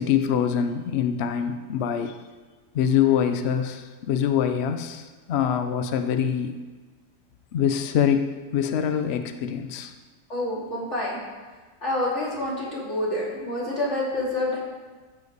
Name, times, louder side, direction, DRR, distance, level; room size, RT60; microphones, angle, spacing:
voice 1, 0.0-2.2 2.7-6.5 7.5-9.9, left 8 dB, 70° left, 8 dB, 0.6 m, -24 dB
voice 2, 10.3-11.2 11.8-14.6, left 1 dB, 40° left, -5 dB, 3.1 m, -27 dB
14.0 x 7.8 x 4.0 m, 1.4 s
omnidirectional pair, 1.8 m